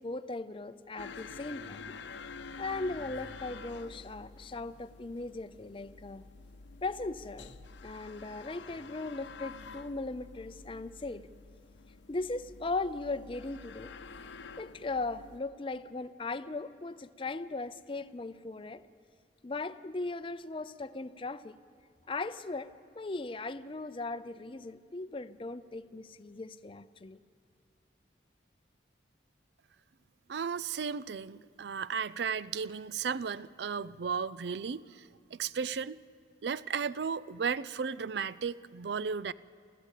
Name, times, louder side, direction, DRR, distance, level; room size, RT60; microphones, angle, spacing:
voice 1, 0.0-2.0 2.6-6.3 6.8-7.5 7.8-11.3 12.1-13.9 14.6-18.8 19.4-21.6 22.1-27.2, left 3 dB, 30° left, 12 dB, 0.5 m, -38 dB
sound 1, 1.0-15.4, left 4 dB, 85° left, 0.8 m, -48 dB
voice 2, 30.3-36.0 36.4-39.3, right 6 dB, 65° right, 18 dB, 0.4 m, -35 dB
28.5 x 14.0 x 8.3 m, 2.3 s
head